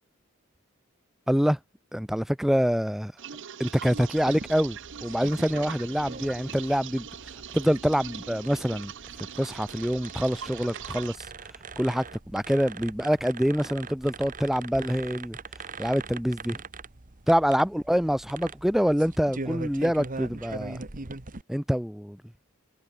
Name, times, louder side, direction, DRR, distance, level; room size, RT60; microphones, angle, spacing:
voice 1, 1.3-1.6 1.9-3.1 3.6-7.1 7.5-8.9 9.4-11.2 11.8-12.1 12.3-15.4 15.8-16.6 17.3-20.8 21.5-22.2, equal, ahead, 0.8 m, -25 dB
sound 1, 3.2-11.2, right 8 dB, 60° right, 0.9 m, -41 dB
sound 2, 4.2-21.4, right 3 dB, 40° right, 1.5 m, -42 dB
head